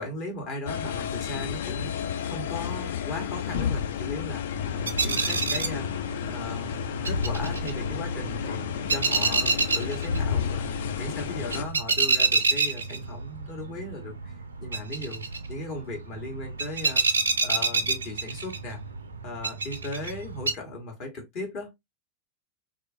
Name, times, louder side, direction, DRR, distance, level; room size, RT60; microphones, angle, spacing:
voice 1, 0.0-6.0 6.3-14.3 14.6-15.2 15.5-17.2 17.4-18.8 19.2-21.7, left 2 dB, 40° left, 1.2 m, -37 dB
sound 1, 0.7-11.6, left 9 dB, 60° left, 0.3 m, -32 dB
sound 2, 4.5-20.5, right 4 dB, 75° right, 0.3 m, -29 dB
sound 3, 7.1-8.5 10.1-11.5, left 3 dB, 80° left, 1.6 m, -32 dB
2.6 x 2.4 x 2.5 m
figure-of-eight pair, 90°, 0 cm